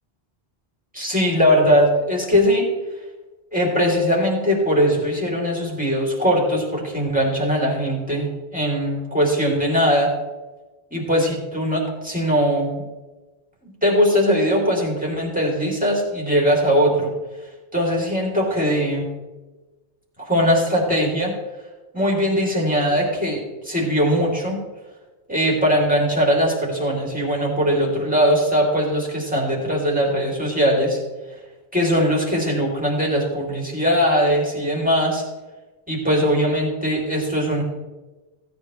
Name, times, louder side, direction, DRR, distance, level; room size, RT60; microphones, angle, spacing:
voice 1, 0.9-2.7 3.5-10.1 10.9-12.8 13.8-17.1 17.7-19.1 20.2-21.3 21.9-24.6 25.3-31.0 31.7-35.2 35.9-37.6, equal, 10° right, -3 dB, 3.1 m, -20 dB
16.0 x 9.3 x 3.2 m, 1.2 s
omnidirectional pair, 1.0 m